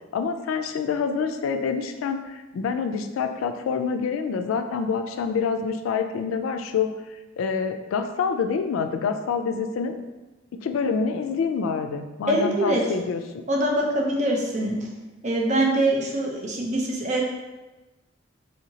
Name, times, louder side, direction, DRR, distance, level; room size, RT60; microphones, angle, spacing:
voice 1, 0.1-6.9 7.4-10.0 10.6-13.2, left 5 dB, 90° left, 8 dB, 0.3 m, -26 dB
voice 2, 12.3-12.8 13.5-14.8 15.2-17.2, right 1 dB, 40° right, -1 dB, 0.6 m, -23 dB
3.4 x 2.8 x 2.7 m, 1.1 s
head